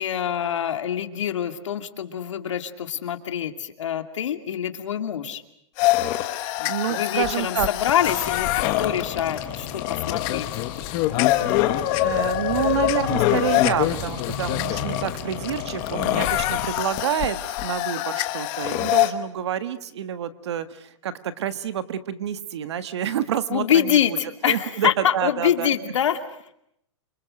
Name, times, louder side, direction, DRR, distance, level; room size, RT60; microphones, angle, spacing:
voice 1, 0.0-5.4 6.6-8.5 8.8-10.5 23.5-26.2, left 9 dB, 75° left, 7 dB, 2.5 m, -25 dB
sound 1, 5.8-19.1, left 15 dB, 25° left, 1.3 m, -25 dB
voice 2, 6.2-7.7 12.0-24.2 24.5-25.7, right 9 dB, 60° right, 12 dB, 1.6 m, -28 dB
sound 2, 8.0-16.7, left 5 dB, 10° left, 6.0 m, -36 dB
28.5 x 25.0 x 6.6 m, 0.75 s
hypercardioid pair, 170°, 16 cm